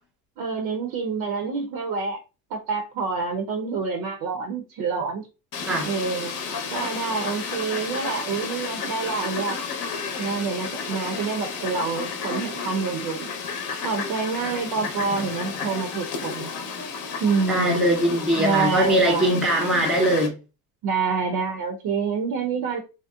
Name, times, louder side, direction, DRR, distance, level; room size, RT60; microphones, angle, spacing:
voice 1, 0.4-2.2 2.5-5.3 5.8-6.4 6.7-9.6 10.2-13.3 13.8-16.5 17.2-17.8 18.3-19.3 20.8-22.8, right 5 dB, 50° right, 0.7 m, -27 dB
Fowl, 5.5-20.3, left 5 dB, 40° left, 0.8 m, -32 dB
voice 2, 17.5-20.3, right 1 dB, ahead, 0.7 m, -21 dB
2.8 x 2.0 x 2.3 m
hypercardioid pair, 85°, 49 cm